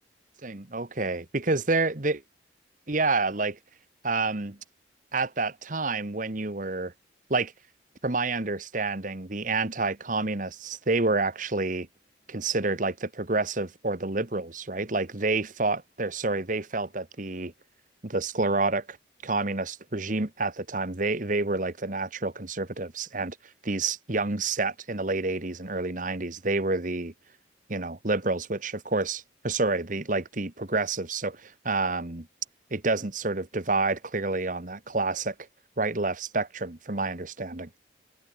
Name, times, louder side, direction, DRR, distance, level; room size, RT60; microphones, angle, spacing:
voice 1, 0.4-2.2 2.9-3.6 4.0-4.6 5.1-6.9 7.3-7.5 8.0-11.9 12.3-17.5 18.0-19.0 19.2-23.4 23.6-27.1 27.7-32.3 32.7-35.3 35.8-37.7, right 3 dB, 45° right, 1.5 m, -28 dB
head